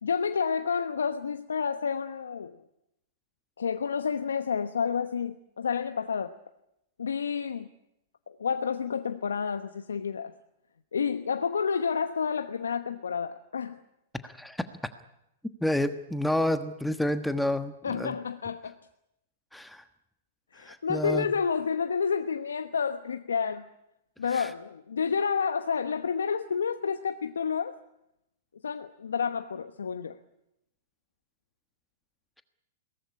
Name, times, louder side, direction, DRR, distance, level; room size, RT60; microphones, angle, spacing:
voice 1, 0.0-2.6 3.6-6.4 7.0-7.7 8.3-10.3 10.9-13.8 17.8-18.7 20.5-23.6 24.2-27.8 28.6-30.2, left 6 dB, 80° left, 9 dB, 1.1 m, -30 dB
voice 2, 14.2-14.6 15.6-18.2 19.5-19.8 20.6-21.3 24.3-24.5, left 1 dB, 5° left, 9 dB, 1.3 m, -29 dB
22.5 x 19.0 x 9.8 m, 0.84 s
hypercardioid pair, 110°, 0 cm